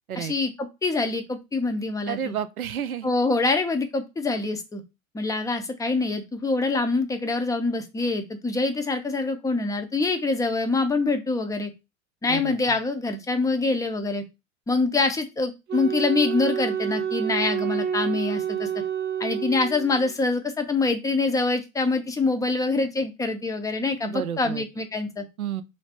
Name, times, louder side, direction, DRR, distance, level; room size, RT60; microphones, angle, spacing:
voice 1, 0.2-2.3 3.0-4.8 5.1-11.7 12.2-14.2 14.7-18.7 19.2-25.2, left 3 dB, 10° left, 0.5 m, -25 dB
voice 2, 2.1-3.1 12.3-12.8 24.0-24.6 25.4-25.6, right 9 dB, 90° right, 0.5 m, -31 dB
Wind instrument woodwind instrument, 15.7-20.1, right 8 dB, 25° right, 0.8 m, -28 dB
3.2 x 2.6 x 4.2 m
figure-of-eight pair, 80°, 42 cm